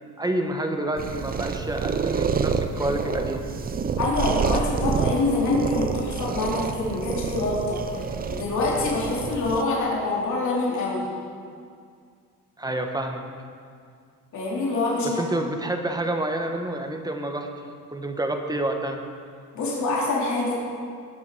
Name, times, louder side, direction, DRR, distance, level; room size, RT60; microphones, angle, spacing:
voice 1, 0.0-3.4 12.6-13.2 15.2-17.5 17.9-19.0, right 1 dB, 10° right, 4 dB, 1.2 m, -28 dB
sound 1, 1.0-9.6, right 6 dB, 25° right, 0.6 m, -28 dB
voice 2, 4.0-7.8 8.3-11.1 14.3-15.2 19.5-20.5, left 2 dB, 60° left, -5 dB, 3.3 m, -25 dB
19.0 x 7.2 x 4.8 m, 2.2 s
cardioid pair, 110°, 33 cm